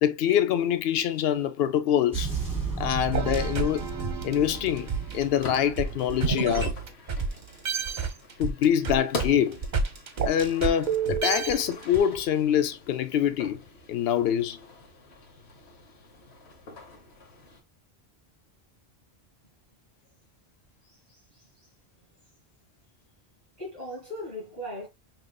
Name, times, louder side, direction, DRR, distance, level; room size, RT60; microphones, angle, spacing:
voice 1, 0.0-2.3 2.8-3.9 4.2-6.8 8.4-9.6 10.2-13.6 13.9-14.6, left 9 dB, 75° left, 0.8 m, -25 dB
sound 1, 2.1-6.2, right 4 dB, 5° right, 2.5 m, -33 dB
sound 2, 3.1-7.3 7.6-12.0, right 5 dB, 50° right, 0.8 m, -30 dB
sound 3, 4.4-17.6, left 2 dB, 90° left, 1.3 m, -44 dB
voice 2, 20.8-21.7 23.6-24.9, left 1 dB, 15° left, 2.8 m, -39 dB
5.0 x 2.9 x 2.3 m
omnidirectional pair, 1.1 m